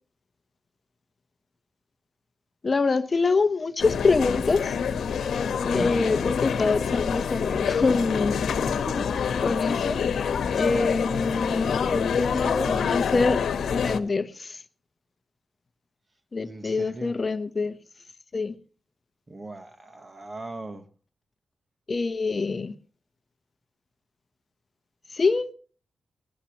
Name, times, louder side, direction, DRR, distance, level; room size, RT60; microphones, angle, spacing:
voice 1, 2.6-4.8 5.6-8.4 9.4-10.0 10.5-13.4 13.7-14.6 16.3-17.8 18.3-18.5 21.9-22.7 25.1-25.5, left 4 dB, 35° left, 0.9 m, -25 dB
sound 1, 3.8-14.0, left 6 dB, 85° left, 1.1 m, -26 dB
voice 2, 12.3-13.0 16.4-17.2 19.3-20.9, right 2 dB, 25° right, 1.3 m, -40 dB
19.0 x 18.0 x 2.9 m
wide cardioid pair, 115°, 0 cm